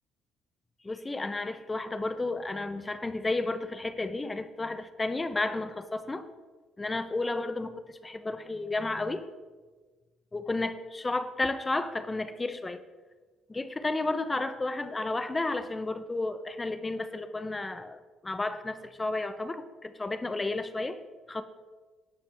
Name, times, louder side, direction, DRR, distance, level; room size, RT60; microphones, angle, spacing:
voice 1, 0.8-6.3 6.8-9.2 10.3-12.8 13.5-21.0 21.3-21.4, left 2 dB, 20° left, 10 dB, 0.8 m, -32 dB
17.5 x 5.9 x 3.4 m, 1.3 s
cardioid pair, 90°, 0 cm